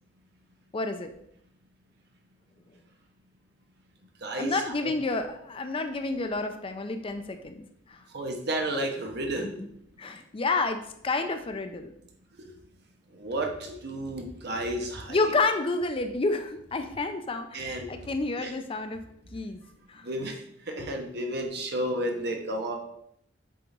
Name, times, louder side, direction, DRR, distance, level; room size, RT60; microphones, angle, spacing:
voice 1, 0.7-1.1 4.4-8.0 9.4-9.7 10.0-11.9 15.1-19.0 19.3-19.6 19.9-20.1, left 3 dB, 30° left, 8 dB, 0.5 m, -30 dB
voice 2, 4.2-4.5 8.1-9.6 13.2-15.2 17.5-17.9 20.0-20.3 20.7-22.7, right 1 dB, 60° right, 2 dB, 1.1 m, -31 dB
7.6 x 3.8 x 3.8 m, 0.73 s
head